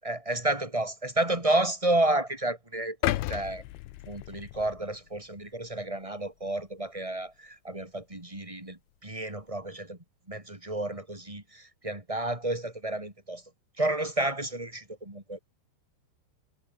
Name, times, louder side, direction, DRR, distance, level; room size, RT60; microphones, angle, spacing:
voice 1, 0.0-3.6 4.1-10.0 10.3-13.4 13.8-15.4, right 2 dB, 5° right, 3.6 m, -31 dB
sound 1, 3.0-5.2 5.7-5.8, left 16 dB, 80° left, 3.3 m, -33 dB
omnidirectional pair, 5.3 m